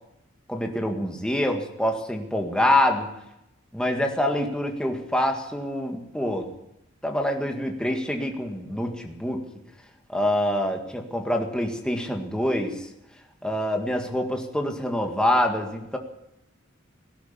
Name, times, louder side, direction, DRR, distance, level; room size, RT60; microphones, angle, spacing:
voice 1, 0.5-3.1 3.7-6.5 7.0-9.4 10.1-12.8 13.4-16.0, left 1 dB, 5° left, 2 dB, 1.8 m, -25 dB
18.0 x 11.0 x 7.0 m, 0.84 s
head